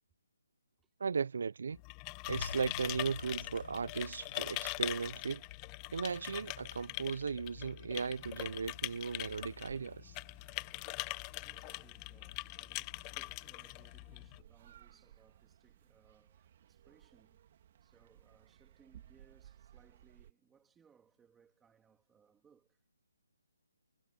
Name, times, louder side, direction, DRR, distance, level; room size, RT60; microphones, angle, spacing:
voice 1, 1.0-1.8 2.3-5.4 5.9-10.2, right 5 dB, 60° right, 0.7 m, -37 dB
sound 1, 1.7-14.4, left 30 dB, 15° left, 0.3 m, -42 dB
sound 2, 2.3-9.7, left 4 dB, 65° left, 1.2 m, -50 dB
voice 2, 5.7-6.0 11.4-17.4 17.8-22.8, right 7 dB, 5° right, 3.3 m, -68 dB
sound 3, 8.1-20.3, right 10 dB, 35° right, 2.8 m, -61 dB
hypercardioid pair, 170°, 0 cm